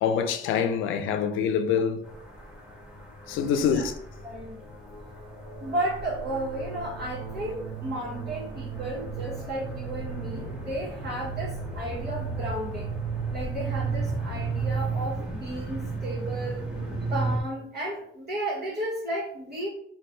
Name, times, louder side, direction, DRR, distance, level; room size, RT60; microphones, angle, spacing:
voice 1, 0.0-2.0 3.3-3.9, left 7 dB, 90° left, 0.5 m, -25 dB
sound 1, 2.0-17.4, right 4 dB, 5° right, 1.2 m, -34 dB
voice 2, 3.5-3.9 4.2-4.5 5.6-13.0 13.3-16.7 17.1-19.7, right 1 dB, 55° right, 1.3 m, -33 dB
3.9 x 2.3 x 3.8 m
cardioid pair, 90°, 20 cm